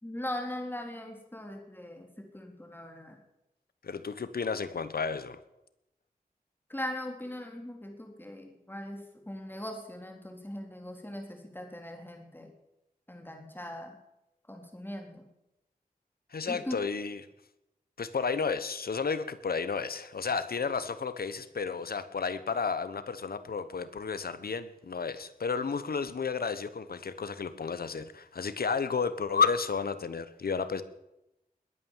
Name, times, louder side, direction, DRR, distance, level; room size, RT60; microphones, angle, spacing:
voice 1, 0.0-3.2 6.7-12.5 13.1-14.0 14.5-15.2 16.5-16.8, left 1 dB, 15° left, 3 dB, 3.8 m, -40 dB
voice 2, 3.8-5.4 16.3-17.2 18.0-30.8, left 5 dB, 85° left, 13 dB, 1.1 m, -32 dB
21.0 x 9.1 x 7.4 m, 0.89 s
cardioid pair, 50°, 15 cm